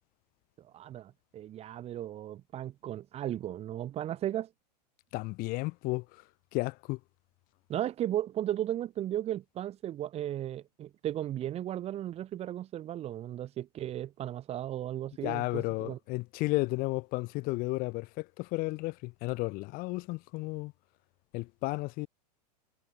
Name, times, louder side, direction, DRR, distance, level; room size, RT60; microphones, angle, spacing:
voice 1, 0.6-4.5 7.7-16.0, right 12 dB, 30° right, 1.5 m, -35 dB
voice 2, 5.1-6.1 6.5-7.0 15.2-20.7 21.3-22.1, left 23 dB, 45° left, 2.0 m, -33 dB
hypercardioid pair, 115°, 21 cm